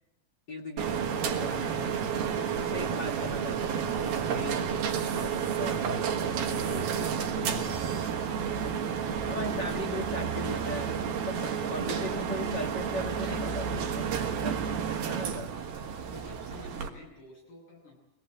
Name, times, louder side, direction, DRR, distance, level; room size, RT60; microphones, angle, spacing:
voice 1, 0.5-8.6 9.3-10.9 11.2-14.6 15.0-15.5, left 2 dB, 45° left, 1 dB, 1.3 m, -39 dB
sound 1, 0.8-16.9, right 7 dB, 65° right, 3.2 m, -31 dB
voice 2, 16.1-18.0, left 1 dB, 70° left, 0 dB, 9.9 m, -49 dB
23.5 x 18.5 x 7.9 m, 0.83 s
omnidirectional pair, 4.9 m